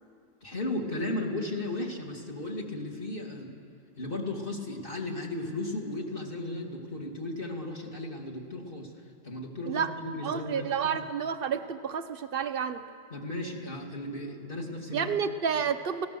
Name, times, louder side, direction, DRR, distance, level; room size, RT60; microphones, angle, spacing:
voice 1, 0.4-3.5 4.0-8.9 9.2-10.8 13.1-15.2, left 2 dB, 30° left, 0 dB, 2.6 m, -35 dB
voice 2, 10.2-12.8 14.9-16.1, right 7 dB, 90° right, 8 dB, 0.4 m, -30 dB
25.0 x 17.5 x 6.9 m, 2.3 s
omnidirectional pair, 2.0 m